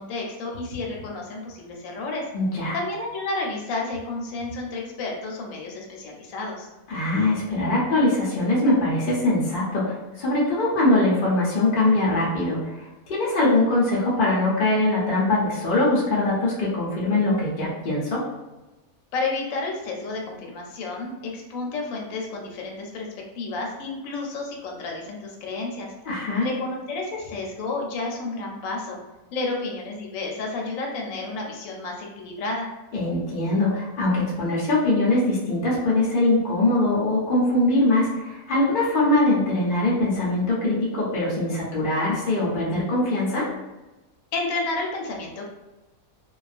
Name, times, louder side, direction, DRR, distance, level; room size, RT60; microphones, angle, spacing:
voice 1, 0.0-2.3 2.7-6.7 19.1-23.1 23.4-25.9 26.4-29.0 29.3-32.7 44.3-45.5, left 3 dB, 75° left, -1 dB, 0.9 m, -31 dB
voice 2, 2.3-2.8 6.9-18.2 26.0-26.5 32.9-43.5, left 2 dB, 55° left, -6 dB, 0.5 m, -22 dB
2.3 x 2.3 x 2.4 m, 1.1 s
omnidirectional pair, 1.5 m